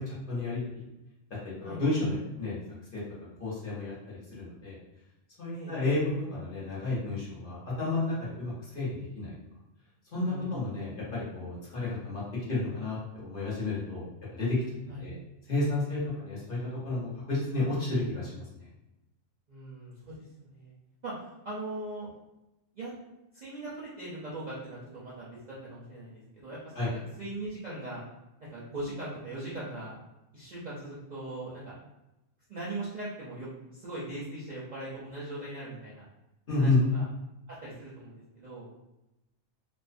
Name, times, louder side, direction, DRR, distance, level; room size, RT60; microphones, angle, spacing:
voice 1, 0.1-0.6 1.4-2.6 2.9-3.0 3.4-4.8 5.4-6.0 6.3-9.3 10.1-12.2 12.5-14.1 14.3-14.6 15.0-15.1 15.5-16.6 16.8-18.4 26.8-26.9 36.5-36.8, left 2 dB, 50° left, -7 dB, 0.8 m, -31 dB
voice 2, 5.5-5.9 10.2-10.7 14.9-15.1 16.0-16.4 19.5-20.7 21.0-22.1 22.7-22.9 23.3-26.9 27.2-28.0 28.4-30.0 30.3-31.7 32.5-36.0 36.6-37.1 37.5-38.7, right 2 dB, 50° right, -8 dB, 0.5 m, -40 dB
2.5 x 2.0 x 2.5 m, 0.95 s
omnidirectional pair, 1.3 m